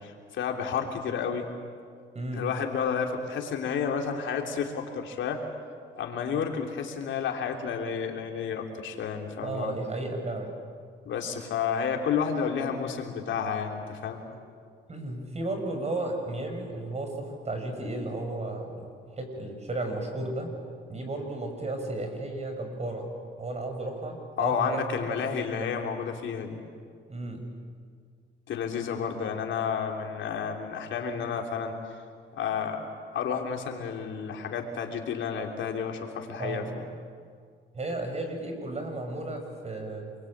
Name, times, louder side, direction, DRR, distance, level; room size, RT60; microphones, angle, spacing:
voice 1, 0.0-1.5 2.3-5.4 6.0-9.7 11.0-14.2 24.4-26.6 28.5-31.8 32.3-32.9 33.1-36.8, left 6 dB, 70° left, 2 dB, 3.4 m, -31 dB
voice 2, 2.1-2.5 9.4-10.6 14.9-20.5 20.9-23.1 23.4-25.7 27.1-27.4 36.4-36.7 37.7-40.1, right 2 dB, 35° right, 4 dB, 6.3 m, -34 dB
27.5 x 23.0 x 8.8 m, 2.1 s
cardioid pair, 90°, 20 cm